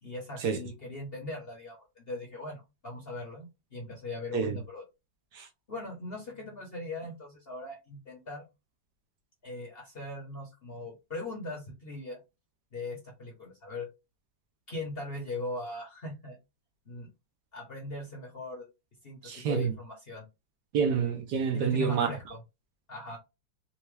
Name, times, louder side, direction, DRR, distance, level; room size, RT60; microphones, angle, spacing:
voice 1, 0.0-4.8 5.7-8.5 9.4-12.2 12.7-13.9 14.7-16.4 16.9-17.1 17.5-18.7 19.0-20.3 21.5-22.4 22.9-23.2, left 2 dB, 40° left, 0.9 m, -40 dB
voice 2, 19.2-19.7 20.7-22.1, right 6 dB, 70° right, 1.3 m, -28 dB
4.2 x 2.2 x 3.2 m
omnidirectional pair, 2.0 m